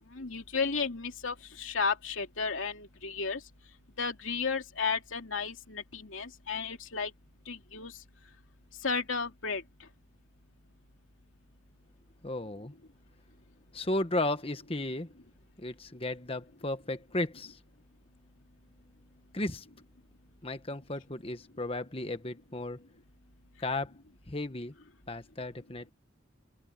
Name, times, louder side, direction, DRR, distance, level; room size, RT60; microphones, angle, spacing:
voice 1, 0.1-3.4 4.0-7.1 7.5-7.9 8.8-9.6, left 5 dB, 80° left, 2.7 m, -33 dB
voice 2, 12.2-12.7 13.7-15.1 15.6-17.6 19.3-19.7 20.4-22.8 23.6-24.0 24.3-24.7 25.1-25.9, left 2 dB, 30° left, 1.3 m, -34 dB
head